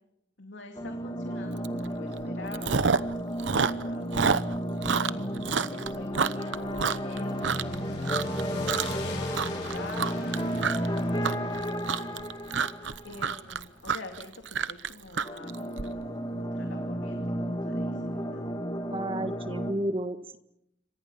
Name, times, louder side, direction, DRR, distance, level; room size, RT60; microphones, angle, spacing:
voice 1, 0.4-2.7 3.6-4.1 4.9-7.6 8.2-12.2 13.0-18.5, left 2 dB, 80° left, 3 dB, 2.6 m, -46 dB
sound 1, 0.8-13.3 15.2-19.7, equal, 25° left, 2.3 m, -33 dB
Chewing mastication, 1.6-1.9 2.2-3.1 3.4-7.8 8.0-8.4 8.7-9.1 9.3-15.8, right 5 dB, 85° right, 0.9 m, -28 dB
sound 2, 7.0-15.2, left 3 dB, 60° left, 5.3 m, -45 dB
voice 2, 18.9-20.4, right 1 dB, 30° right, 9 dB, 1.6 m, -32 dB
27.5 x 26.0 x 5.7 m, 0.81 s
head